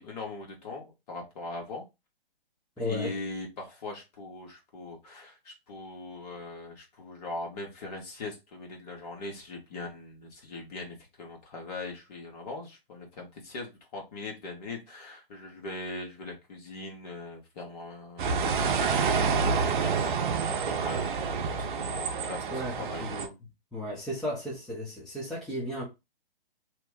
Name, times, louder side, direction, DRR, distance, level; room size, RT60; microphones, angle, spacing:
voice 1, 0.0-1.8 2.8-19.4 19.7-23.0, left 2 dB, 40° left, 1.3 m, -40 dB
voice 2, 2.8-3.1 22.5-22.7 23.0-23.3 23.7-25.8, left 1 dB, ahead, 0.6 m, -34 dB
sound 1, 18.2-23.3, right 5 dB, 55° right, 0.6 m, -28 dB
2.9 x 2.1 x 3.6 m
hypercardioid pair, 140°, 29 cm